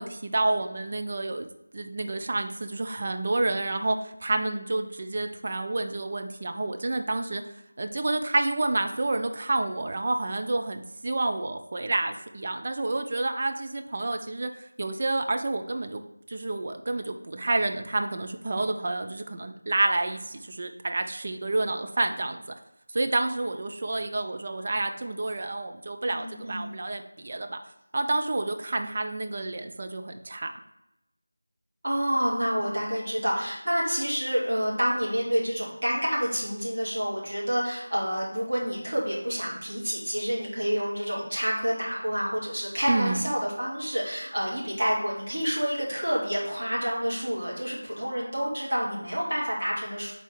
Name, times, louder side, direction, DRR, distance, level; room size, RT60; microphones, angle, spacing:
voice 1, 0.0-1.5 1.7-7.4 7.8-16.0 16.3-22.4 22.9-27.6 27.9-30.5 42.9-43.2, right 2 dB, 30° right, 5 dB, 0.3 m, -29 dB
voice 2, 26.1-26.7 31.8-50.1, equal, 55° right, -6 dB, 2.4 m, -28 dB
5.4 x 4.0 x 4.6 m, 0.87 s
figure-of-eight pair, 170°, 0 cm